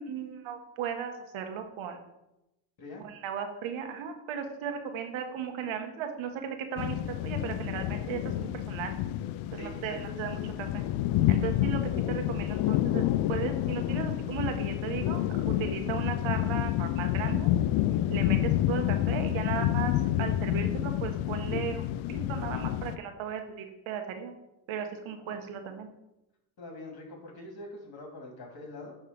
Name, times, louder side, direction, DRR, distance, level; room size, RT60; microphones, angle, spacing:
voice 1, 0.0-2.0 3.0-9.0 9.5-10.8 11.3-11.8 12.1-13.0 13.3-17.5 18.1-19.9 20.2-21.8 22.1-24.3 24.7-25.9, right 7 dB, 70° right, 6 dB, 1.3 m, -36 dB
sound 1, 6.8-23.0, left 13 dB, 75° left, 0.5 m, -29 dB
voice 2, 9.5-10.2 25.2-25.3 26.6-29.0, left 2 dB, 50° left, 1 dB, 2.9 m, -44 dB
10.5 x 3.5 x 5.2 m, 0.90 s
supercardioid pair, 80°, 49 cm